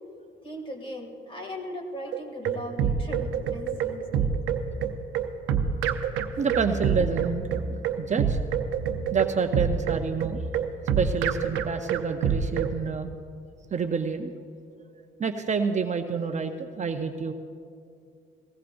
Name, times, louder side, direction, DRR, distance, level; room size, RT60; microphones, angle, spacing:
voice 1, 0.4-4.3 6.3-6.4, equal, 25° left, 3 dB, 2.4 m, -38 dB
sound 1, 2.1-12.7, right 8 dB, 90° right, 0.8 m, -26 dB
sound 2, 2.4-4.9 5.2-5.3 5.5-5.8 6.4-6.9 7.2-7.8 8.7-9.1 9.9-10.0 10.3-10.9, right 1 dB, 90° left, 3.5 m, -38 dB
voice 2, 6.4-8.4 9.1-10.4 11.0-13.1 13.7-14.3 15.2-17.3, right 5 dB, 35° right, 6 dB, 0.7 m, -28 dB
19.0 x 16.0 x 2.6 m, 2.3 s
cardioid pair, 90°, 20 cm